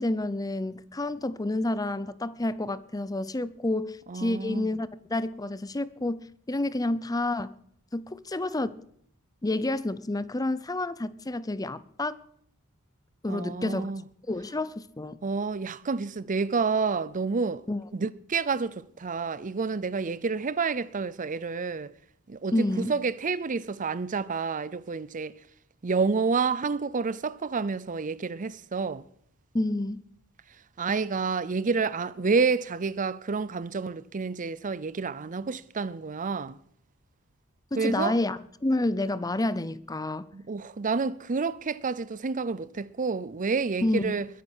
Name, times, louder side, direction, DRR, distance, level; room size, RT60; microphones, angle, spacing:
voice 1, 0.0-7.6 7.9-8.8 9.4-12.2 13.2-13.9 14.3-15.2 17.7-17.8 22.5-22.9 29.5-30.0 37.7-40.3 43.8-44.1, left 2 dB, 15° left, 0.6 m, -29 dB
voice 2, 4.1-4.7 13.3-14.0 15.2-17.6 17.9-21.9 22.3-25.3 25.8-29.0 30.8-36.6 37.8-38.2 40.3-44.3, right 4 dB, 35° right, 0.6 m, -29 dB
22.0 x 10.0 x 6.3 m
head